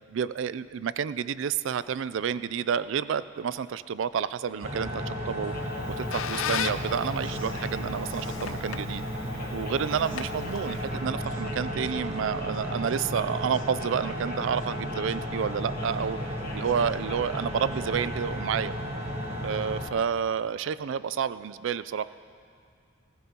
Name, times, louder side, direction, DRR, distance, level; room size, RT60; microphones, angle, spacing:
voice 1, 0.1-9.0 9.5-18.7 19.4-22.1, right 7 dB, 60° right, 15 dB, 0.3 m, -30 dB
sound 1, 4.4-18.1, left 2 dB, 45° left, 1.4 m, -47 dB
sound 2, 4.6-19.9, equal, 30° right, 1.6 m, -34 dB
Squeak, 5.6-11.1, left 8 dB, 70° left, 0.4 m, -37 dB
18.5 x 15.0 x 2.9 m, 2.2 s
head